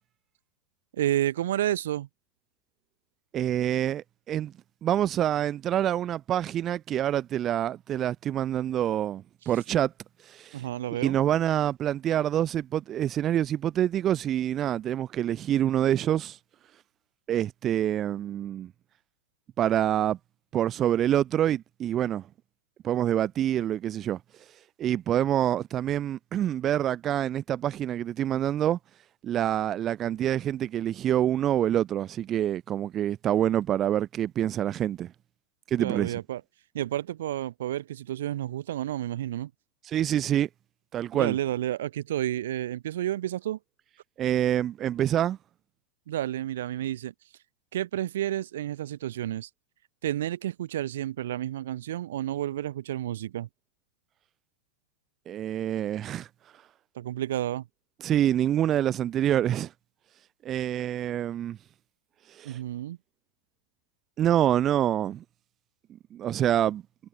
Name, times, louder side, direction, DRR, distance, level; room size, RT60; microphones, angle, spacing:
voice 1, 1.0-2.1 10.5-11.2 35.8-36.4 36.7-39.5 41.1-43.6 46.1-47.1 47.7-49.5 50.0-53.5 56.9-57.6 62.4-63.0, right 12 dB, 60° right, 4.7 m, -30 dB
voice 2, 3.3-4.5 4.8-9.9 10.3-10.6 11.0-16.4 17.3-18.7 19.6-20.2 20.5-22.2 22.8-24.2 24.8-28.8 29.2-35.1 35.7-36.2 39.9-40.5 40.9-41.4 44.2-45.4 55.3-56.3 58.0-59.7 60.4-61.6 62.4-62.6 64.2-65.2 66.1-66.8, right 11 dB, 30° right, 5.5 m, -26 dB
figure-of-eight pair, 90°, 0 cm